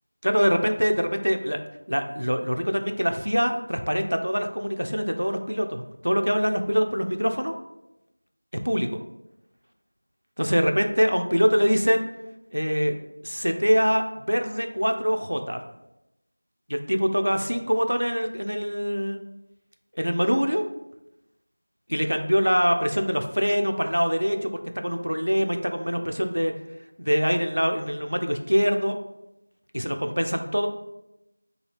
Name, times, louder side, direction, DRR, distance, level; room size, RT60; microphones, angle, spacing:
voice 1, 0.2-1.6 1.9-7.5 8.6-9.0 10.4-12.0 12.5-13.0 13.2-15.6 16.7-19.2 20.0-20.7 21.9-26.5 27.0-29.0 29.7-30.7, equal, 75° right, 5 dB, 0.3 m, -24 dB
2.7 x 2.4 x 3.2 m, 0.89 s
figure-of-eight pair, 175°, 0 cm